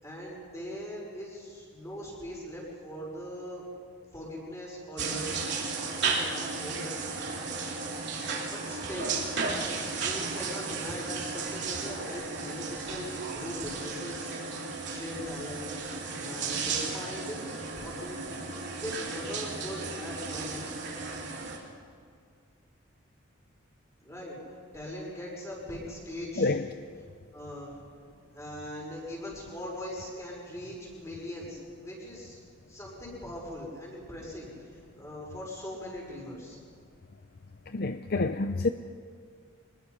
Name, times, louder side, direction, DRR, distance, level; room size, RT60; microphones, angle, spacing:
voice 1, 0.0-3.6 4.1-5.5 6.1-6.9 8.5-9.2 9.9-14.4 14.9-15.7 16.2-17.5 17.8-18.4 18.8-20.7 24.0-24.4 24.7-26.5 27.3-27.8 28.3-32.4 32.7-36.6, equal, 15° left, 5.8 m, -40 dB
sound 1, 5.0-21.6, right 4 dB, 55° right, 3.2 m, -34 dB
voice 2, 26.4-26.7 37.7-38.7, left 3 dB, 45° left, 0.6 m, -28 dB
25.0 x 20.5 x 5.6 m
head